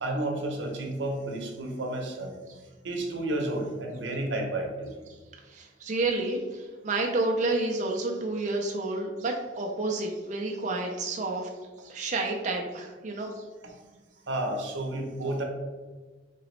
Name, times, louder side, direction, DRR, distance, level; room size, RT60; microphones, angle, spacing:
voice 1, 0.0-2.3 2.8-4.9 13.6-13.9 14.3-15.4, right 1 dB, 85° right, 2 dB, 0.7 m, -31 dB
voice 2, 5.4-11.5 11.8-13.5, right 2 dB, 40° right, 1 dB, 0.4 m, -30 dB
3.9 x 3.0 x 3.0 m, 1.3 s
head